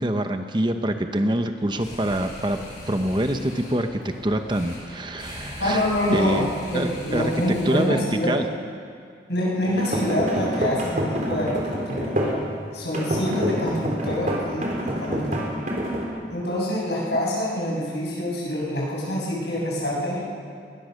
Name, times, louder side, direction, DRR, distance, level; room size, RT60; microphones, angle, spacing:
voice 1, 0.0-2.6 2.9-6.5 6.7-8.5, right 1 dB, 25° right, 6 dB, 0.9 m, -25 dB
sound 1, 1.7-8.1, left 1 dB, 45° left, 7.6 m, -40 dB
voice 2, 5.6-8.4 9.3-12.2 12.7-15.5 16.3-20.2, left 1 dB, 70° left, -4 dB, 7.2 m, -26 dB
sound 2, 9.6-12.4 12.9-16.0, equal, 45° right, 4.0 m, -27 dB
21.0 x 19.0 x 6.6 m, 2.2 s
head